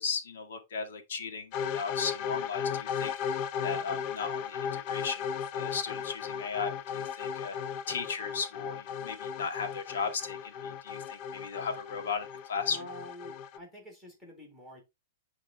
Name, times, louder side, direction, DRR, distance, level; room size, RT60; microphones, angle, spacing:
voice 1, 0.0-7.6 7.9-12.9, left 5 dB, 75° left, 1.9 m, -36 dB
sound 1, 1.5-13.6, left 7 dB, 25° left, 0.4 m, -36 dB
voice 2, 12.7-14.8, equal, 10° left, 2.1 m, -47 dB
10.0 x 3.7 x 3.5 m
supercardioid pair, 180°, 0 cm